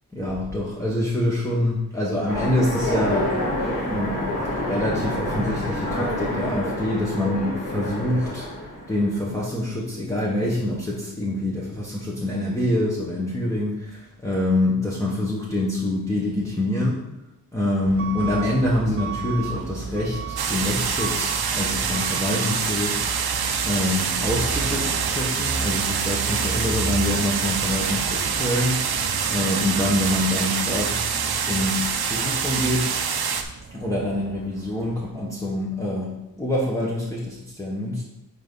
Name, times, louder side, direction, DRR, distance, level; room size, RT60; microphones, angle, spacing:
voice 1, 0.1-4.2 4.6-17.0 17.5-29.0 29.3-31.0 31.5-31.8 32.1-32.9 33.7-38.0, left 1 dB, 10° left, -6 dB, 1.1 m, -26 dB
Train, 2.3-9.2, left 1 dB, 60° left, 2.2 m, -28 dB
Truck / Alarm, 17.9-35.1, right 5 dB, 35° right, 0.6 m, -34 dB
sound 1, 20.4-33.4, right 6 dB, 80° right, 0.7 m, -26 dB
6.0 x 4.6 x 5.5 m, 0.87 s
wide cardioid pair, 145°, 37 cm